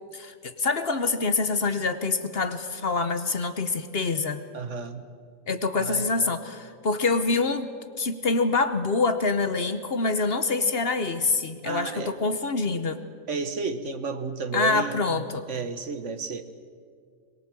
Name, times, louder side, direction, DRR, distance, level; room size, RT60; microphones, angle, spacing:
voice 1, 0.1-4.4 5.5-7.7 8.0-13.0 14.5-15.5, left 3 dB, 50° left, 10 dB, 1.2 m, -26 dB
voice 2, 4.5-5.1 5.7-6.0 11.6-12.1 13.3-15.2 15.5-16.4, right 4 dB, 60° right, 9 dB, 1.5 m, -32 dB
22.5 x 22.5 x 7.6 m, 2.1 s
omnidirectional pair, 1.4 m